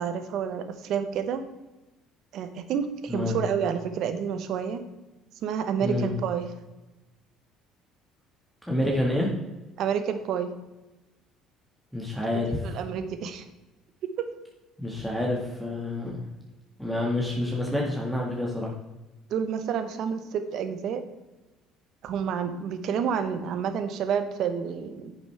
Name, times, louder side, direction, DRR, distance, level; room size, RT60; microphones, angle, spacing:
voice 1, 0.0-1.4 2.3-4.8 5.4-6.5 9.8-10.5 12.6-13.4 14.2-14.3 19.3-21.0 22.0-25.2, right 7 dB, 65° right, 9 dB, 1.1 m, -29 dB
voice 2, 8.7-9.3 11.9-12.7 14.8-16.2 16.8-18.7, left 1 dB, 5° left, -2 dB, 1.9 m, -28 dB
10.0 x 6.9 x 3.5 m, 1.1 s
supercardioid pair, 80°, 0 cm